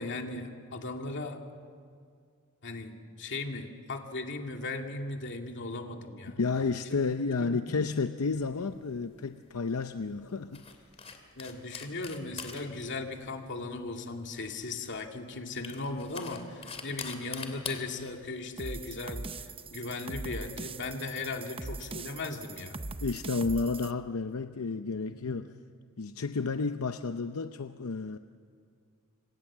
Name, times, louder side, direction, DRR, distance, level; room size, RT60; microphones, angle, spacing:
voice 1, 0.0-1.4 2.6-6.4 6.9-7.0 7.4-7.6 11.4-22.8 25.2-25.3, left 3 dB, 60° left, 3 dB, 2.4 m, -37 dB
voice 2, 6.4-10.6 23.0-25.5 26.0-28.2, left 4 dB, 85° left, 9 dB, 0.7 m, -31 dB
sound 1, 8.3-20.9, left 5 dB, 30° left, 2.6 m, -46 dB
sound 2, 18.6-23.9, right 3 dB, 25° right, 0.8 m, -41 dB
27.0 x 26.5 x 7.4 m, 2.2 s
head